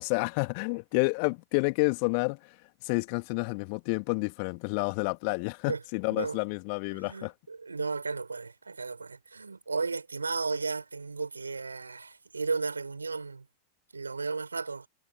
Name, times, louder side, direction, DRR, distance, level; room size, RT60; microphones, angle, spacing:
voice 1, 0.0-2.4 2.8-7.3, left 35 dB, 45° left, 2.0 m, -29 dB
voice 2, 6.9-13.5 13.9-14.9, right 4 dB, 80° right, 3.9 m, -34 dB
figure-of-eight pair, 90°, 0 cm